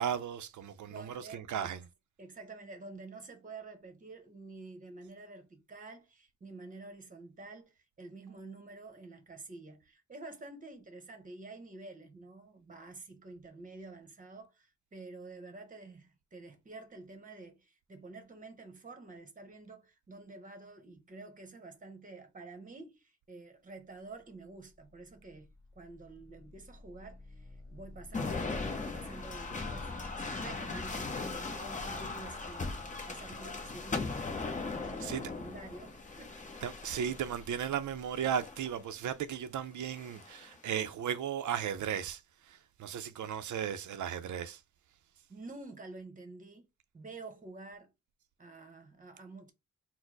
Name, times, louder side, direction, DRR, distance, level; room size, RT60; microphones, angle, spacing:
voice 1, 0.0-1.8 35.0-35.3 36.6-44.6, right 8 dB, 90° right, 0.5 m, -36 dB
voice 2, 0.9-1.7 2.2-34.2 34.7-36.4 45.3-46.7 46.9-47.9 48.4-49.5, right 3 dB, 25° right, 0.9 m, -49 dB
sound 1, 24.0-41.4, left 2 dB, 10° left, 1.0 m, -54 dB
sound 2, 28.1-37.5 38.2-38.7 39.8-40.5, left 3 dB, 25° left, 0.7 m, -39 dB
4.3 x 2.0 x 4.5 m
wide cardioid pair, 165°, 29 cm